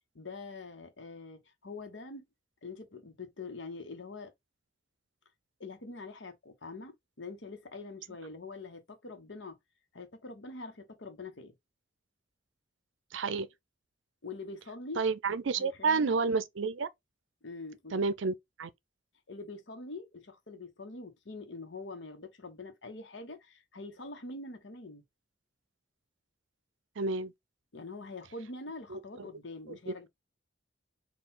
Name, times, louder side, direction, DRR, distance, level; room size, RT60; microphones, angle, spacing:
voice 1, 0.1-2.3 2.6-4.3 5.6-9.6 9.9-11.5 14.2-15.0 15.6-16.3 17.4-18.0 19.3-25.0 27.7-30.1, left 3 dB, 75° left, 1.0 m, -44 dB
voice 2, 13.1-13.5 15.0-16.9 17.9-18.7 27.0-27.3 28.9-29.0 29.7-30.1, right 4 dB, 80° right, 0.5 m, -30 dB
4.5 x 2.4 x 3.6 m
head